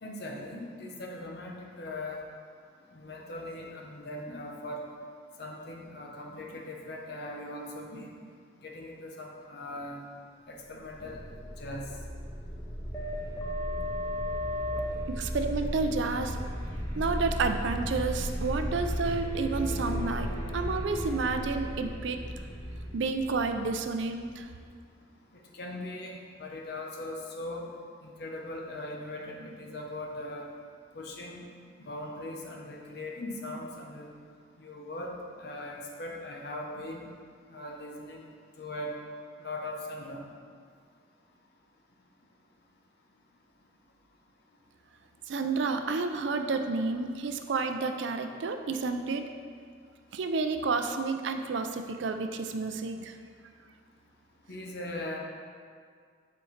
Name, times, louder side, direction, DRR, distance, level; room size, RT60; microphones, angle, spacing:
voice 1, 0.0-2.2 2.9-4.8 5.4-8.2 8.6-10.0 10.5-11.2 11.6-11.9 25.5-27.7 28.0-30.5 30.9-31.4 31.8-34.1 34.6-37.1 37.5-38.2 38.6-38.9 39.4-40.2 54.5-55.2, left 1 dB, 55° left, 0 dB, 0.8 m, -40 dB
sound 1, 10.9-24.6, equal, 15° left, 0.6 m, -35 dB
voice 2, 15.1-16.4 17.0-22.2 22.9-24.5 45.3-49.2 50.1-53.1, right 4 dB, 70° right, 6 dB, 0.4 m, -30 dB
8.0 x 4.4 x 3.2 m, 2.1 s
head